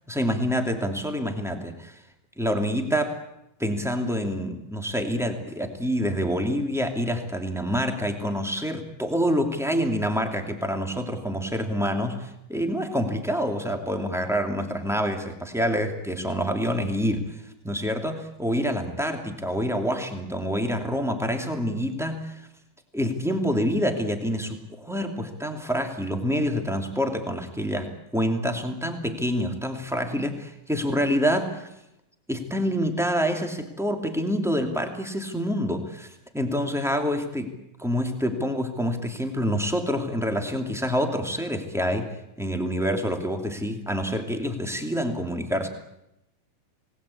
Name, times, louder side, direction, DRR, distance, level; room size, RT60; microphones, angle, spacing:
voice 1, 0.1-2.0 2.4-3.2 3.6-22.5 22.9-31.7 32.3-37.5 37.8-45.7, equal, ahead, 4 dB, 1.9 m, -27 dB
27.5 x 19.5 x 8.6 m, 0.85 s
omnidirectional pair, 4.4 m